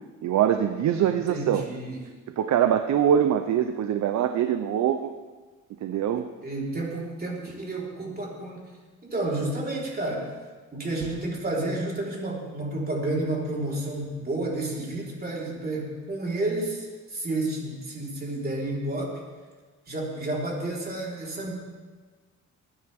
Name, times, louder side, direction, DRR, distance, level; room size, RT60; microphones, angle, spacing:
voice 1, 0.2-1.6 2.3-5.1 5.8-6.3, right 9 dB, 65° right, 8 dB, 0.7 m, -23 dB
voice 2, 1.3-2.0 6.4-8.6 9.0-10.3 10.7-19.1 19.9-21.5, right 2 dB, 30° right, -3 dB, 4.1 m, -30 dB
20.0 x 10.0 x 3.6 m, 1.4 s
cardioid pair, 90°, 30 cm